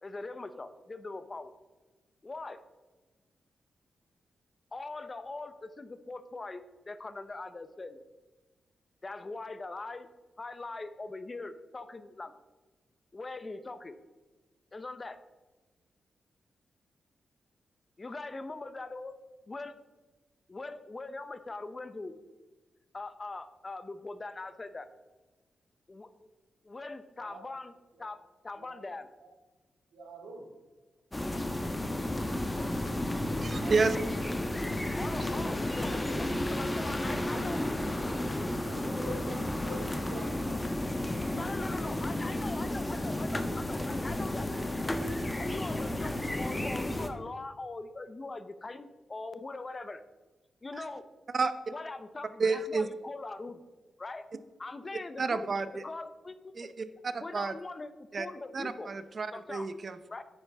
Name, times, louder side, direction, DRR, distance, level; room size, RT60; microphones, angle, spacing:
voice 1, 0.0-1.5 2.2-2.6 4.7-8.0 9.0-10.1 10.4-12.3 13.1-14.0 14.7-15.2 18.0-19.1 19.5-19.8 20.5-22.2 22.9-24.9 25.9-26.3 26.6-29.1 34.9-37.6 41.4-44.7 45.4-50.0 50.6-51.0 51.7-53.6 54.0-54.2 54.6-55.5 55.8-56.7 57.2-58.9 59.3-59.7 60.1-60.2, left 3 dB, 35° left, 12 dB, 0.9 m, -41 dB
voice 2, 29.9-30.4 33.6-34.0 35.1-36.0 37.0-37.4 38.6-40.5 41.3-42.0, right 1 dB, 85° right, -1 dB, 2.8 m, -45 dB
sound 1, 31.1-47.1, left 1 dB, 20° left, 1.2 m, -32 dB
voice 3, 33.4-34.0 51.3-51.5 52.4-52.9 55.2-55.8 56.6-57.5 58.1-58.3 58.5-60.0, right 4 dB, 50° right, 12 dB, 0.8 m, -30 dB
9.7 x 9.2 x 3.6 m, 1.2 s
cardioid pair, 65°, 0 cm